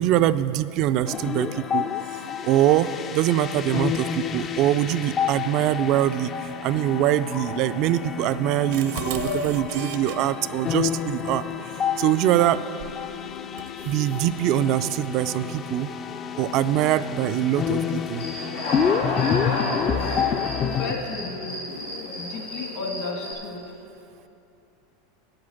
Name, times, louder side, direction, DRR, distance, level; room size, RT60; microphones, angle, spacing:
voice 1, 0.0-1.9 2.5-6.3 6.6-11.4 12.0-12.7 13.9-15.9 16.4-18.3, right 12 dB, 50° right, 13 dB, 0.4 m, -23 dB
sound 1, 1.1-20.9, left 8 dB, 35° left, 0.5 m, -29 dB
sound 2, 8.3-10.2 12.8-13.0 13.6-14.3, right 7 dB, 70° right, 0.7 m, -36 dB
voice 2, 8.9-9.4 19.5-20.2 20.6-21.7 22.1-23.6, left 4 dB, 60° left, 0 dB, 2.3 m, -33 dB
Human voice / Cricket, 18.2-23.3, left 1 dB, 90° left, 2.7 m, -31 dB
9.6 x 7.9 x 7.1 m, 2.8 s
hypercardioid pair, 110°, 0 cm